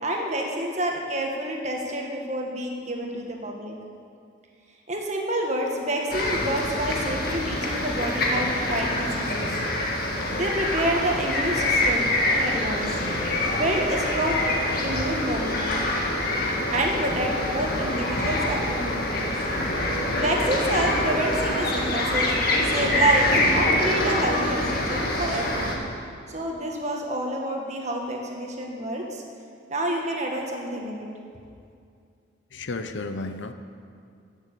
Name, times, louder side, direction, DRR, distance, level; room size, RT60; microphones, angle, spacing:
voice 1, 0.0-3.7 4.9-9.5 10.3-12.9 13.5-14.6 14.8-15.7 16.7-19.3 20.2-22.3 22.6-25.8 26.3-29.2 29.7-31.1, right 1 dB, 35° right, 0 dB, 1.8 m, -28 dB
sound 1, 6.1-25.7, left 1 dB, 50° left, 1.8 m, -25 dB
voice 2, 32.5-33.5, left 3 dB, 70° left, 9 dB, 0.8 m, -32 dB
14.0 x 7.3 x 8.4 m, 2.4 s
head